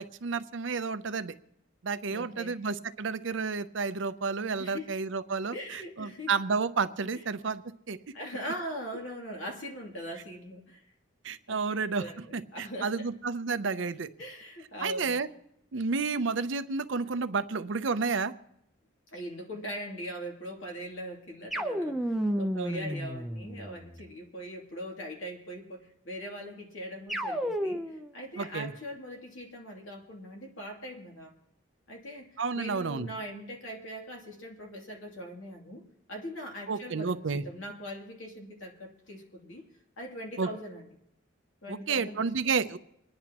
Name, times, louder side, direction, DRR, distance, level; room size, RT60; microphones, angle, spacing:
voice 1, 0.0-1.3 1.8-8.0 11.2-12.1 12.3-14.1 14.8-15.3 15.7-18.3 22.5-22.9 28.4-28.7 32.4-33.1 36.7-37.4 40.4-40.5 41.7-42.8, right 4 dB, 65° right, 11 dB, 0.6 m, -31 dB
voice 2, 2.1-2.6 4.6-4.9 5.5-6.3 8.1-10.8 11.5-13.1 14.2-15.2 19.1-31.3 31.9-35.8 36.1-39.6 40.0-40.9 41.6-42.3, equal, 75° left, 0 dB, 2.8 m, -41 dB
sound 1, 21.5-24.0 27.1-28.1, equal, ahead, 0.6 m, -32 dB
28.0 x 10.5 x 3.0 m, 0.80 s
head